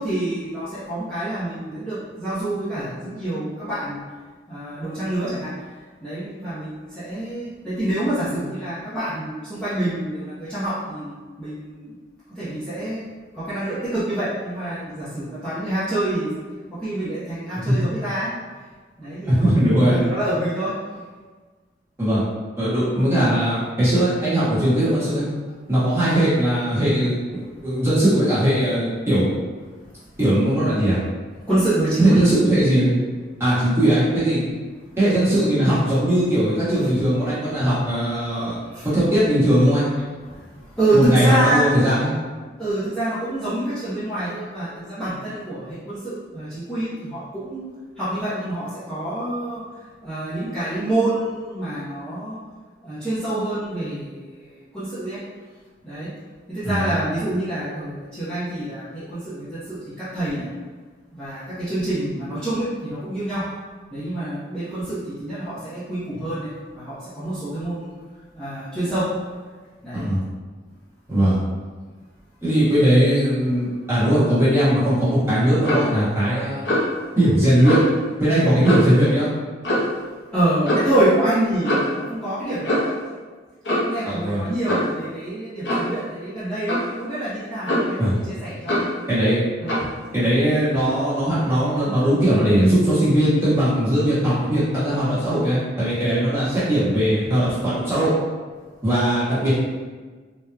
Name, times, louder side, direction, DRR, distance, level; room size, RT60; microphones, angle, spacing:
voice 1, 0.0-4.0 4.5-5.5 6.0-11.1 11.4-11.9 12.3-13.0 13.3-16.3 16.7-18.3 19.0-19.5 19.9-20.7 31.5-32.2 34.5-34.6 38.7-38.9 40.2-41.7 42.6-47.7 48.0-49.6 50.0-52.4 52.8-54.5 54.7-55.2 55.8-56.1 56.5-60.5 61.1-63.5 63.9-67.9 68.3-69.0 69.8-70.1 80.3-82.8 83.7-89.0 89.6-89.8, right 1 dB, 5° left, -15 dB, 0.8 m, -26 dB
voice 2, 19.2-20.0 22.0-22.2 22.6-25.3 25.7-29.3 30.2-31.0 32.0-32.9 33.4-34.4 35.0-38.6 38.8-39.8 40.9-42.1 56.6-56.9 69.9-70.2 71.1-71.4 72.4-76.6 77.2-77.8 78.2-79.3 84.0-84.4 88.0-88.1 89.1-89.4 90.1-98.1 98.8-99.5, right 1 dB, 15° right, -12 dB, 1.2 m, -19 dB
Clock, 75.7-75.9 76.7-77.0 77.6-77.9 78.6-79.0 79.6-80.0 80.6-80.9 81.6-82.0 82.6-83.0 83.6-84.0 84.7-84.9 85.6-85.9 86.7-86.9 87.7-88.0 88.7-88.9 89.7-89.9, equal, 80° left, 0.9 m, -23 dB
3.5 x 2.9 x 2.2 m, 1.4 s
head